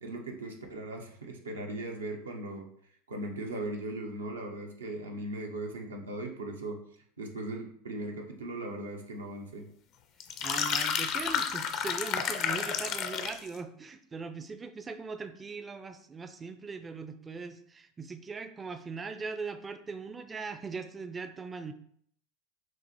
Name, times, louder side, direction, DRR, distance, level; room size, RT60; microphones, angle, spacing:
voice 1, 0.0-2.7 3.1-6.8 7.2-9.7, right 1 dB, 90° right, 1 dB, 0.7 m, -38 dB
sound 1, 10.2-13.5, left 7 dB, 50° left, 0.5 m, -31 dB
voice 2, 10.4-21.7, right 4 dB, 25° right, 9 dB, 0.4 m, -40 dB
6.0 x 2.1 x 2.9 m, 0.64 s
hypercardioid pair, 85°, 0 cm